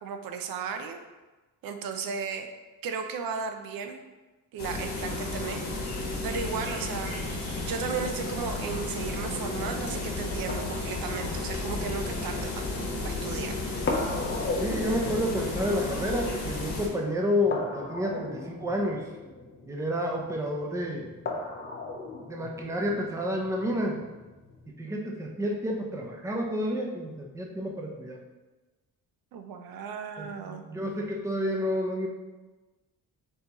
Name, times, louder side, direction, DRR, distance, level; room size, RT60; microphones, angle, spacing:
voice 1, 0.0-1.0 1.6-2.5 2.8-4.0 4.5-7.2 7.6-12.6 13.0-13.6 29.3-30.6, right 6 dB, 85° right, 6 dB, 0.5 m, -35 dB
sound 1, 4.6-16.9, left 2 dB, 70° left, 1.4 m, -33 dB
sound 2, 8.3-24.7, left 3 dB, 35° left, 0.7 m, -38 dB
voice 2, 14.6-19.0 19.7-21.1 22.3-24.0 24.8-28.2 30.2-32.1, equal, 10° right, 0 dB, 0.5 m, -30 dB
5.5 x 2.8 x 2.9 m, 1.2 s
cardioid pair, 125°, 34 cm